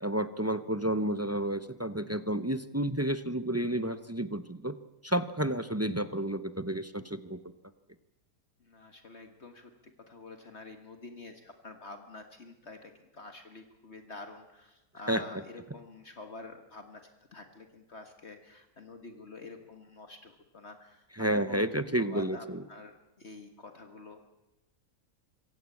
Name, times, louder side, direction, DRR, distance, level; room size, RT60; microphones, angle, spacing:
voice 1, 0.0-4.7 5.0-7.4 15.1-15.2 21.2-22.6, right 1 dB, 20° right, 12 dB, 0.4 m, -31 dB
voice 2, 8.6-9.7 10.1-17.0 17.3-21.0 21.3-24.3, left 3 dB, 50° left, 6 dB, 1.8 m, -48 dB
25.0 x 16.0 x 8.4 m, 0.99 s
omnidirectional pair, 1.5 m